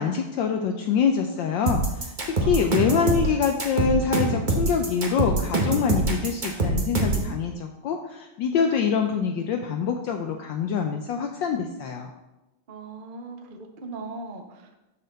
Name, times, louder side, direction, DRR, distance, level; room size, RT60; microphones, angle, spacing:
voice 1, 0.0-12.1, left 6 dB, 75° left, 4 dB, 1.1 m, -25 dB
sound 1, 1.7-7.3, right 2 dB, 30° right, 0.9 m, -24 dB
voice 2, 2.4-3.1 12.7-14.8, right 3 dB, 65° right, 4 dB, 0.5 m, -38 dB
12.5 x 4.3 x 3.9 m, 0.98 s
omnidirectional pair, 2.4 m